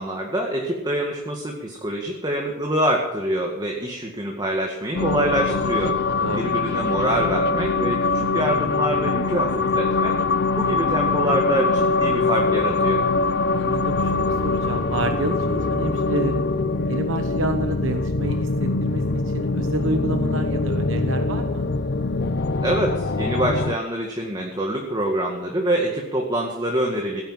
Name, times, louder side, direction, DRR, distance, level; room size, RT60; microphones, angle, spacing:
voice 1, 0.0-5.9 6.3-10.2 10.5-13.0 22.6-27.2, right 1 dB, 20° right, 0 dB, 2.0 m, -25 dB
sound 1, 4.9-23.8, left 3 dB, 55° left, 0.6 m, -23 dB
voice 2, 6.2-6.5 13.5-16.5 16.9-21.7, right 2 dB, 70° right, 6 dB, 1.1 m, -29 dB
17.5 x 10.5 x 7.5 m, 1.0 s
head